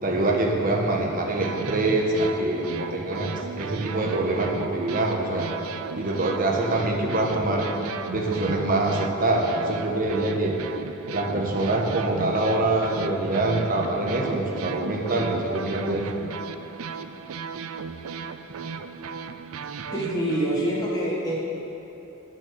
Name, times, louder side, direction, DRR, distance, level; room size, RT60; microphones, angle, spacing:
voice 1, 0.0-5.5 5.9-7.7 8.1-10.6 11.1-16.0, right 2 dB, 40° right, 0 dB, 1.3 m, -25 dB
sound 1, 1.2-20.6, right 5 dB, 75° right, 0.5 m, -36 dB
voice 2, 19.9-21.4, right 1 dB, 15° left, -6 dB, 1.7 m, -26 dB
9.8 x 8.1 x 6.8 m, 3.0 s
head